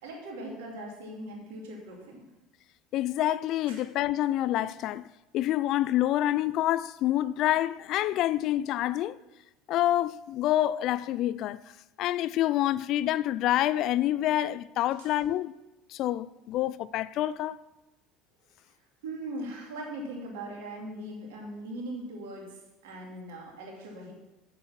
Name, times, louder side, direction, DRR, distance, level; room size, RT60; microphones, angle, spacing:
voice 1, 0.0-2.2 3.7-3.8 15.0-15.1 19.0-22.5 22.8-24.1, right 1 dB, 70° right, 2.6 m, -40 dB
voice 2, 2.9-5.1 5.3-9.2 9.7-11.6 12.0-15.5 15.9-17.6, left 13 dB, 55° left, 0.3 m, -27 dB
7.7 x 7.4 x 5.9 m
hypercardioid pair, 65°, 0 cm